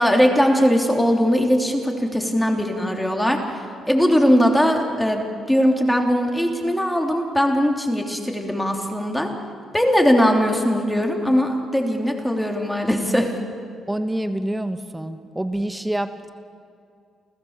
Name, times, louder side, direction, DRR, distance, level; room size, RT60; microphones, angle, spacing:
voice 1, 0.0-3.4 3.9-9.3 9.7-13.3, equal, 5° left, 2 dB, 3.2 m, -20 dB
voice 2, 13.9-16.3, right 1 dB, 10° right, 9 dB, 1.4 m, -27 dB
29.0 x 15.0 x 7.4 m, 2.3 s
cardioid pair, 90°, 0 cm